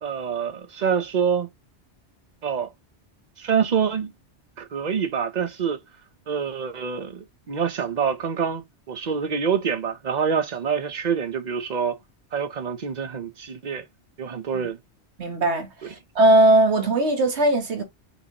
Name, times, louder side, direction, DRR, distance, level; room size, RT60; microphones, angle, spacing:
voice 1, 0.0-1.5 2.4-2.7 3.4-4.1 4.6-5.8 6.3-12.0 12.3-13.8 14.2-14.8 15.8-15.9, right 7 dB, 45° right, 0.8 m, -26 dB
voice 2, 15.2-15.7 16.1-17.8, right 1 dB, 75° right, 1.4 m, -19 dB
5.3 x 2.9 x 2.9 m
omnidirectional pair, 1.2 m